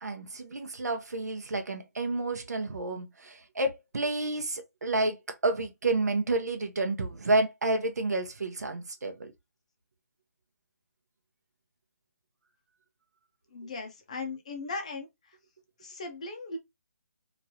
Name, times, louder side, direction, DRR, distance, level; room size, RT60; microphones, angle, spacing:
voice 1, 0.0-9.3, right 2 dB, 80° right, 0.9 m, -30 dB
voice 2, 13.5-15.4 15.8-16.6, left 3 dB, 25° left, 0.5 m, -38 dB
3.1 x 2.5 x 2.8 m
hypercardioid pair, 175°, 9 cm